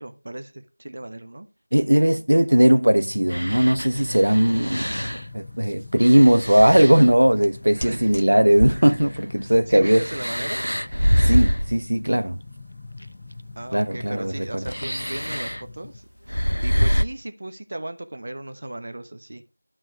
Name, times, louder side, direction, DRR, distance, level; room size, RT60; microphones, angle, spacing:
voice 1, 0.0-1.5 7.8-8.3 9.4-10.7 13.6-19.4, right 1 dB, 35° right, 1.0 m, -36 dB
voice 2, 1.7-4.9 5.3-10.0 11.2-12.4 13.7-14.6, right 1 dB, 65° right, 1.0 m, -18 dB
sound 1, 3.0-16.0, left 3 dB, 15° left, 0.5 m, -43 dB
sound 2, 3.3-5.3 6.0-8.3 8.6-11.8 13.0-13.1 14.6-15.6 16.3-17.0, equal, 90° left, 0.7 m, -25 dB
12.0 x 7.5 x 4.7 m
figure-of-eight pair, 175°, 0 cm